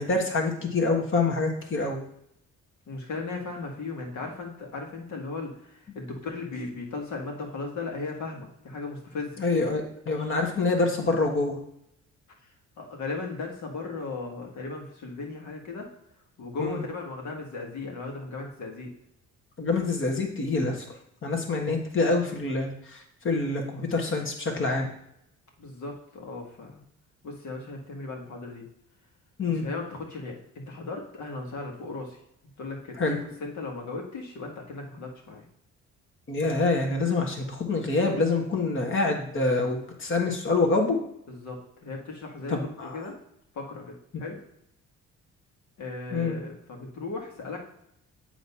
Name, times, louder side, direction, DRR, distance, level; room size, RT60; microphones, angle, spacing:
voice 1, 0.0-2.0 9.4-11.6 16.6-16.8 19.6-20.9 21.2-24.9 29.4-29.6 33.0-33.2 36.3-41.0 42.5-43.0 46.1-46.4, left 3 dB, 40° left, 2 dB, 1.6 m, -26 dB
voice 2, 2.9-9.4 12.8-15.9 16.4-18.9 25.6-26.8 27.2-28.7 29.4-32.2 32.6-33.0 33.4-35.5 41.3-43.2 43.5-44.4 45.8-47.6, left 3 dB, 70° left, 1 dB, 1.8 m, -37 dB
7.9 x 3.2 x 5.6 m, 0.75 s
cardioid pair, 90°, 30 cm